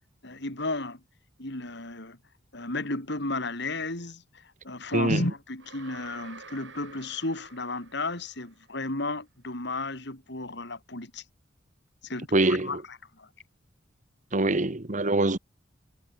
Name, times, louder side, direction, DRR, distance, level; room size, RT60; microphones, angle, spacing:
voice 1, 0.2-1.0 1.4-2.2 2.5-11.2 12.0-13.3, left 2 dB, 65° left, 4.3 m, -33 dB
sound 1, 5.6-8.7, right 4 dB, 70° right, 7.6 m, -49 dB
voice 2, 12.3-12.8 14.3-15.4, right 2 dB, 40° right, 1.4 m, -24 dB
head